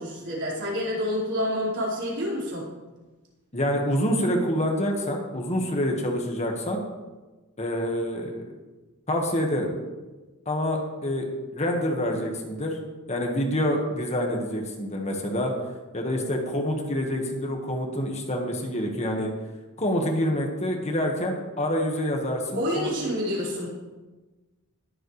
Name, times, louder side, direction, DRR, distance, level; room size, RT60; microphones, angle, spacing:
voice 1, 0.0-2.6 22.5-23.7, equal, 55° right, -6 dB, 4.6 m, -28 dB
voice 2, 3.5-6.8 7.6-8.4 9.1-9.7 10.4-11.2 11.5-12.8 13.1-15.5 15.9-19.3 19.8-22.9, equal, 30° left, 1 dB, 1.5 m, -27 dB
20.5 x 7.8 x 3.3 m, 1.2 s
head